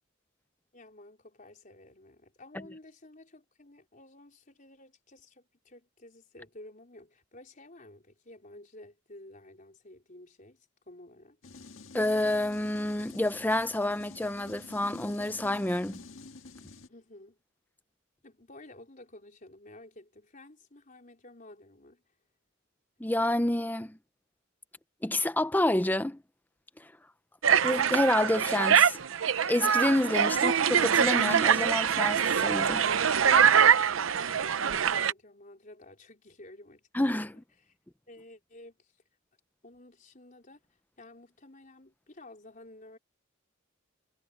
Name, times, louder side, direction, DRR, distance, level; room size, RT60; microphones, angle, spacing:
voice 1, 0.7-11.4 16.9-17.4 18.2-22.0 33.7-34.0 34.2-36.9 37.6-37.8 38.1-38.9 39.6-40.6 41.0-43.0, left 1 dB, 40° left, 4.5 m, -52 dB
sound 1, 11.4-16.9, left 3 dB, 80° left, 1.6 m, -49 dB
voice 2, 11.9-16.0 23.0-24.0 25.0-26.2 27.6-29.0 29.5-30.5 30.8-32.9 36.9-37.4, left 1 dB, 10° left, 0.7 m, -28 dB
sound 2, 27.4-35.1, right 7 dB, 80° right, 0.7 m, -24 dB
head